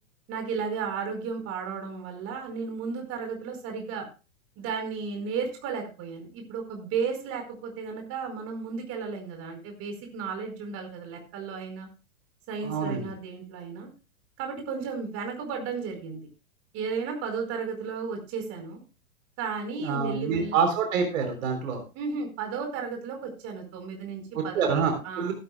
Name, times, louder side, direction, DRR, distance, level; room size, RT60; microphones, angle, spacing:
voice 1, 0.3-4.1 4.6-11.9 12.5-13.9 14.4-16.3 16.7-18.8 19.4-20.5 21.9-25.3, right 5 dB, 35° right, 3 dB, 4.8 m, -34 dB
voice 2, 12.6-13.1 19.8-21.8 24.3-25.3, right 5 dB, 65° right, 4 dB, 3.8 m, -27 dB
16.0 x 12.5 x 2.3 m, 0.30 s
hypercardioid pair, 125°, 42 cm